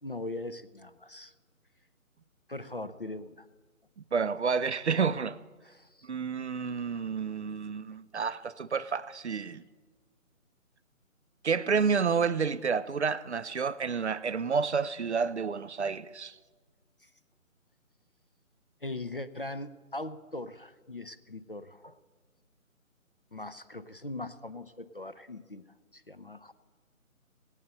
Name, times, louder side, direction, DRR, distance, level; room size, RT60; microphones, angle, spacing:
voice 1, 0.0-1.3 2.5-3.5 5.6-6.1 17.0-17.1 18.8-22.0 23.3-25.7 25.9-26.5, left 2 dB, 45° left, 0.4 m, -40 dB
voice 2, 4.1-5.4 6.1-9.6 11.4-16.3, right 5 dB, 55° right, 0.5 m, -30 dB
18.0 x 9.0 x 4.0 m
figure-of-eight pair, 160°, 42 cm